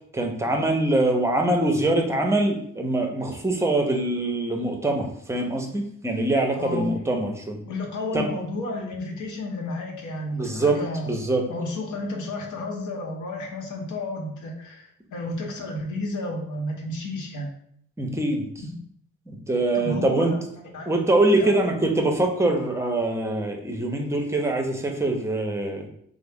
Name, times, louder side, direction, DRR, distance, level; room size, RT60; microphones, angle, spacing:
voice 1, 0.1-7.6 8.1-8.3 10.3-10.8 11.0-11.4 18.0-18.4 19.3-20.3 20.9-25.9, right 2 dB, 10° right, 2 dB, 0.6 m, -23 dB
voice 2, 6.6-7.0 7.7-11.1 11.5-17.5 18.6-18.8 19.7-20.9 21.3-21.8, left 2 dB, 75° left, 1 dB, 0.9 m, -32 dB
3.6 x 2.0 x 3.5 m, 0.67 s
cardioid pair, 90°, 30 cm